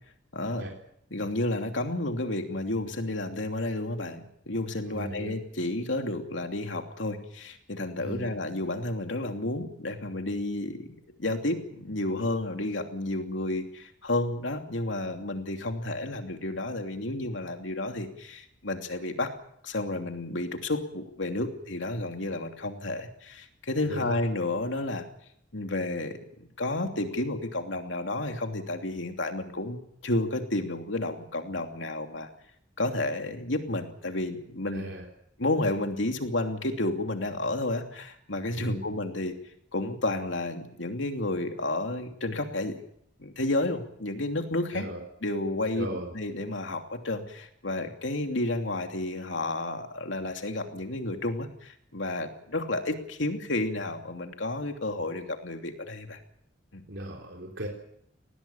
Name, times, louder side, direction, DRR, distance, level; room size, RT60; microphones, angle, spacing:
voice 1, 0.3-0.6 1.1-19.3 19.6-25.0 25.5-26.2 26.6-32.3 32.8-34.8 35.4-39.3 39.7-42.8 43.2-44.9 45.2-56.2 56.7-56.8, left 2 dB, 75° left, 5 dB, 2.9 m, -31 dB
voice 2, 4.8-5.4 8.0-8.3 23.8-24.2 34.7-35.1 38.6-38.9 44.7-45.0 45.8-46.1 56.9-57.7, right 1 dB, 65° right, 0 dB, 3.8 m, -37 dB
19.5 x 19.5 x 8.6 m, 0.71 s
head